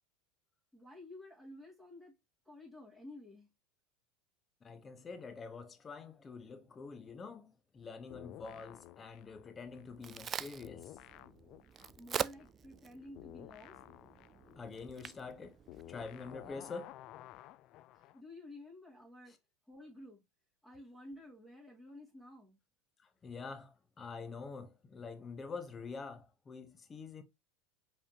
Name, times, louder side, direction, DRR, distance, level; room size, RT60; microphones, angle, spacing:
voice 1, 0.7-2.1 2.5-3.5 12.0-13.8 17.9-19.3 19.7-20.2 20.6-22.6, left 1 dB, ahead, 2.2 m, -52 dB
voice 2, 4.6-10.9 14.6-15.6 15.9-16.9 19.3-19.4 23.2-27.2, left 4 dB, 25° left, 1.0 m, -46 dB
sound 1, 8.1-10.3 10.6-18.2, left 15 dB, 50° left, 0.3 m, -54 dB
Crack, 9.6-16.5, right 8 dB, 30° right, 0.3 m, -45 dB
4.9 x 3.5 x 2.9 m
hypercardioid pair, 90°, 0 cm